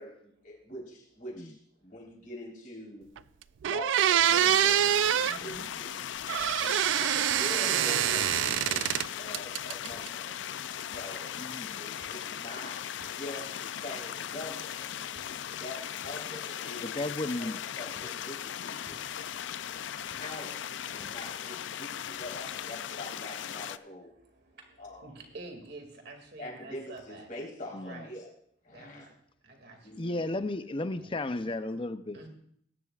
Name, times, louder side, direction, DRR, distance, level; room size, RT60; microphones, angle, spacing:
voice 1, 0.0-3.1 3.6-5.0 5.4-5.9 6.6-10.3 10.9-11.3 11.8-14.9 15.6-16.9 17.4-19.4 20.1-24.1 24.8-25.1 26.4-28.3 28.6-29.1 29.8-30.2, left 1 dB, 45° left, -3 dB, 3.9 m, -44 dB
sound 1, 3.2-3.3 3.6-5.4 6.3-9.1 9.3-10.1, right 11 dB, 85° right, 0.3 m, -25 dB
sound 2, 4.2-23.8, left 9 dB, 80° left, 0.4 m, -38 dB
voice 2, 5.2-5.7 9.7-9.8 10.2-11.0 11.6-11.8 14.9-15.7 18.8-20.2 20.9-21.1 21.9-22.3 24.1-27.3 27.7-28.1 28.7-29.1 29.4-30.0 31.0-31.3 32.1-32.3, right 2 dB, 60° right, 3 dB, 2.3 m, -51 dB
sound 3, 7.3-7.5 8.6-8.8 9.9-10.1 10.9-11.1 12.0-12.2 13.0-13.2 13.9-14.4 15.1-15.3 16.0-16.2 17.1-17.3 17.9-18.2 18.9-19.1 20.1-20.3 21.0-21.2, equal, ahead, 1.4 m, -57 dB
voice 3, 11.3-11.8 16.8-17.6 27.7-28.1 30.0-32.3, left 2 dB, 30° left, 11 dB, 0.6 m, -34 dB
21.0 x 10.5 x 2.4 m, 0.66 s
head